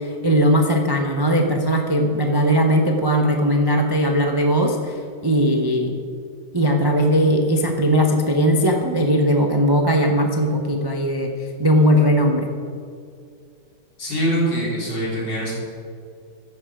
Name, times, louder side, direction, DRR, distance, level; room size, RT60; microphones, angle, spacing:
voice 1, 0.0-6.0 6.5-11.3 11.6-12.5, equal, 20° right, 2 dB, 0.6 m, -19 dB
voice 2, 14.0-15.5, right 1 dB, 60° left, -4 dB, 4.2 m, -23 dB
15.0 x 10.5 x 5.0 m, 2.3 s
omnidirectional pair, 2.2 m